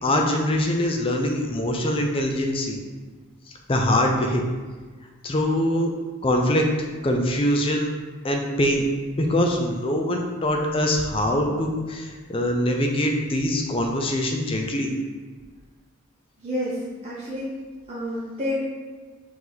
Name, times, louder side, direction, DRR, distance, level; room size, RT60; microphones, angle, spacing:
voice 1, 0.0-2.8 3.7-4.4 5.2-5.9 6.2-6.7 7.0-7.9 8.2-8.8 9.2-14.9, left 1 dB, 25° left, 2 dB, 0.4 m, -23 dB
voice 2, 16.4-16.7 17.0-17.5 17.9-18.6, left 1 dB, 30° right, -8 dB, 0.7 m, -29 dB
4.6 x 2.7 x 3.9 m, 1.4 s
head